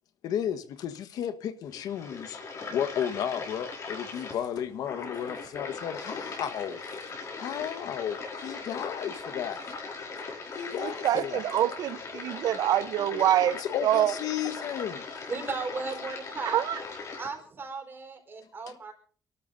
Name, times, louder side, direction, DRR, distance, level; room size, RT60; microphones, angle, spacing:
voice 1, 0.2-2.4 2.7-6.8 7.4-9.6 10.5-11.4 13.6-15.0 18.7-18.8, left 9 dB, 90° left, 1.3 m, -33 dB
sound 1, 1.7-17.3, left 4 dB, 55° left, 5.4 m, -39 dB
voice 2, 10.8-14.1 16.5-16.8, right 12 dB, 85° right, 0.9 m, -26 dB
voice 3, 15.3-16.6 17.2-18.9, right 4 dB, 35° right, 4.7 m, -36 dB
28.5 x 13.0 x 2.7 m
cardioid pair, 130°, 6 cm